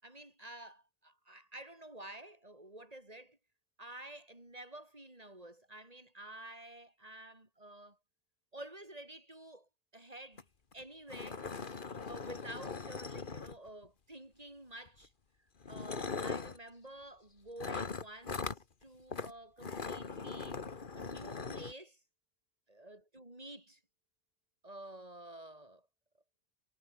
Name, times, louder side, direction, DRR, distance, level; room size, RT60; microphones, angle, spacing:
voice 1, 0.0-3.4 3.8-8.0 8.5-10.4 10.7-15.1 15.7-18.5 18.8-20.6 20.9-22.0 22.7-23.8 24.6-25.9, right 1 dB, 35° right, 6.0 m, -50 dB
sound 1, 10.4-10.5 10.7-10.8 11.1-13.9 14.9-15.1 15.6-16.6 17.6-18.6 19.1-19.3 19.6-21.7, left 4 dB, 50° left, 1.6 m, -40 dB
omnidirectional pair, 1.1 m